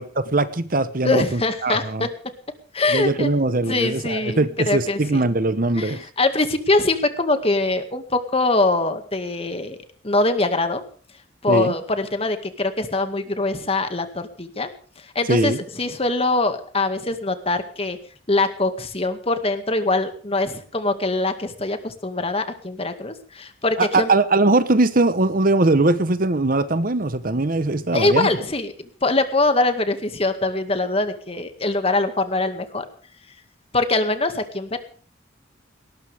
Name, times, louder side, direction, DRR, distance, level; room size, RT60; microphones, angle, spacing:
voice 1, 0.0-2.1 2.9-6.0 11.5-11.7 15.3-15.6 23.8-28.3, right 2 dB, 50° right, 1.0 m, -21 dB
voice 2, 1.0-2.1 2.7-3.3 3.7-5.2 5.7-9.8 10.0-10.8 11.4-14.7 15.2-18.0 18.3-24.1 27.9-32.8 33.7-34.8, left 2 dB, 30° left, 2.1 m, -23 dB
19.5 x 19.0 x 3.6 m
head